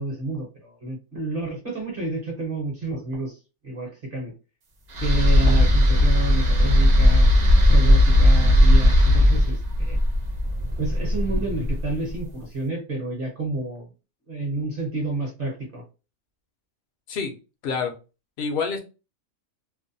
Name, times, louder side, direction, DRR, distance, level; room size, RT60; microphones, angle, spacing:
voice 1, 0.0-3.4 3.6-4.3 5.0-7.3 7.7-10.0 10.8-13.9 14.3-15.8, right 2 dB, 45° right, 0.8 m, -30 dB
sound 1, 4.9-12.1, left 1 dB, 75° right, 0.4 m, -17 dB
voice 2, 18.4-18.8, left 5 dB, 55° left, 0.6 m, -28 dB
2.6 x 2.1 x 2.6 m
omnidirectional pair, 1.5 m